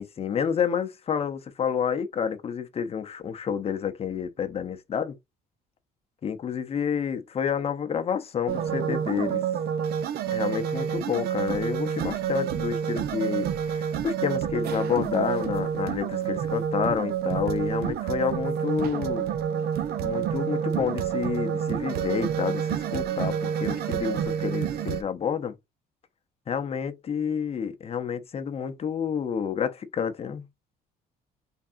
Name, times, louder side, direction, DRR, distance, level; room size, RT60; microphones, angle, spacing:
voice 1, 0.0-5.2 6.2-9.4 10.3-19.3 20.0-25.5 26.5-30.5, left 7 dB, 35° left, 0.8 m, -29 dB
sound 1, 8.5-25.0, right 9 dB, 70° right, 0.7 m, -28 dB
3.6 x 3.3 x 2.6 m
cardioid pair, 110°, 17 cm